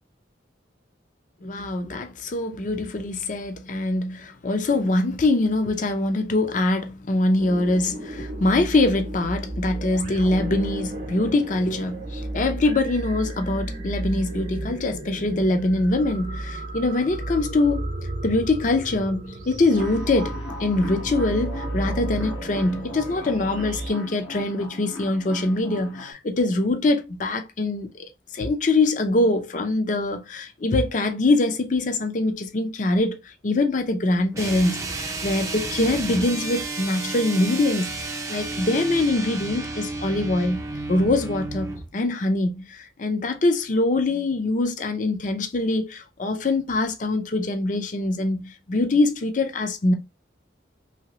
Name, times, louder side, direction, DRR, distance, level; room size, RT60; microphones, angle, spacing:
voice 1, 1.4-17.9 18.2-28.1 28.3-33.2 33.4-49.9, left 2 dB, 40° left, 0.5 m, -23 dB
sound 1, 7.4-23.9, right 1 dB, 40° right, 0.7 m, -33 dB
sound 2, 19.7-26.1, left 1 dB, 90° left, 1.2 m, -37 dB
sound 3, 34.3-41.9, right 3 dB, 15° right, 0.4 m, -32 dB
2.9 x 2.8 x 3.0 m
head